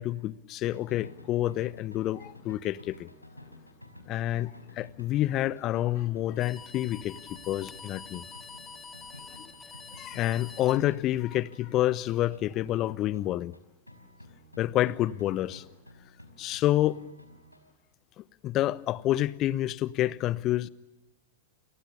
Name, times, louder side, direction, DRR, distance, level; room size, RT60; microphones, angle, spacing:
voice 1, 0.0-3.1 4.1-8.3 10.0-13.5 14.6-15.6 16.4-17.0 18.2-20.7, left 14 dB, 35° left, 20 dB, 1.1 m, -28 dB
sound 1, 0.7-13.6 13.9-17.7, left 1 dB, 90° left, 4.9 m, -52 dB
sound 2, 6.4-11.4, left 5 dB, 15° left, 2.4 m, -47 dB
29.5 x 29.0 x 6.9 m, 0.94 s
figure-of-eight pair, 95°, 0 cm